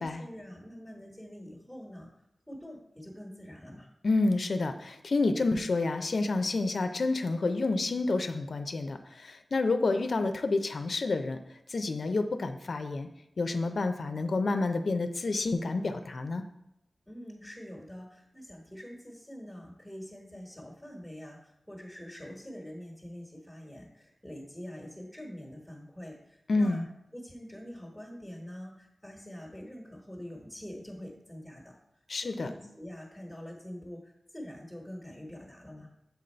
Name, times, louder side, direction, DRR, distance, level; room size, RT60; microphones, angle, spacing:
voice 1, 0.0-2.1 2.5-3.9 17.1-26.8 27.1-31.7 32.2-35.9, equal, 5° left, -1 dB, 1.2 m, -45 dB
voice 2, 4.0-11.4 11.7-13.1 13.4-16.4 26.5-26.9 32.1-32.5, left 3 dB, 65° left, 8 dB, 0.5 m, -29 dB
7.0 x 4.0 x 4.3 m, 0.81 s
wide cardioid pair, 100°, 0 cm